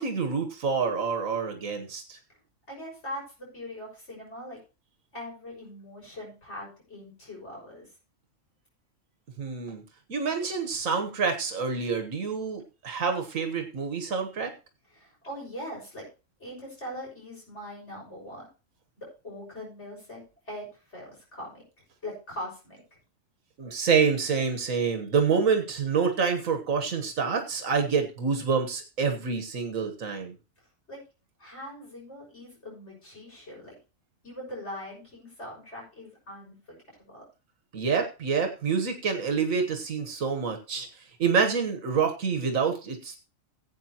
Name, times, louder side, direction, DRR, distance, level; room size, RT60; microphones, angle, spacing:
voice 1, 0.0-2.2 9.4-9.8 10.1-14.5 23.6-30.3 37.7-43.2, right 5 dB, 85° right, 5 dB, 1.7 m, -27 dB
voice 2, 2.7-4.6 5.1-7.9 14.9-16.1 16.4-18.5 19.0-21.6 22.0-22.8 30.9-31.0 31.4-33.8 34.2-37.2, left 1 dB, 60° left, -3 dB, 6.6 m, -41 dB
16.5 x 8.5 x 2.9 m, 0.32 s
omnidirectional pair, 1.3 m